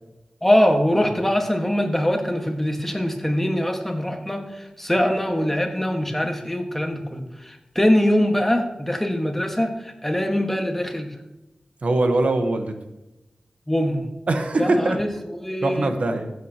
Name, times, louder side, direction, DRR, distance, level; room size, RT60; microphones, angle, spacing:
voice 1, 0.4-11.2 13.7-14.1 14.6-15.1 15.4-15.9, equal, 10° left, 3 dB, 1.6 m, -23 dB
voice 2, 11.8-12.7 14.3-15.0 15.6-16.3, right 2 dB, 75° right, 6 dB, 1.2 m, -22 dB
15.0 x 7.9 x 3.0 m, 0.97 s
wide cardioid pair, 70°, 2 cm